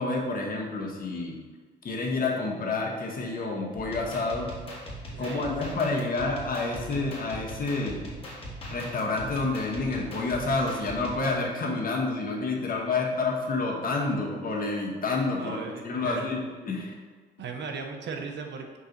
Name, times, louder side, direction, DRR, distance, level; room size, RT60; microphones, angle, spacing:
voice 1, 0.0-1.4 1.8-4.5 5.2-8.0 8.6-16.4 16.7-16.9, left 3 dB, 45° left, -1 dB, 1.4 m, -29 dB
sound 1, 3.8-11.3, equal, 30° left, 1.9 m, -40 dB
voice 2, 5.1-5.5 15.3-16.3 17.4-18.8, right 5 dB, 65° right, 4 dB, 0.9 m, -37 dB
5.4 x 4.0 x 5.2 m, 1.5 s
cardioid pair, 90°, 20 cm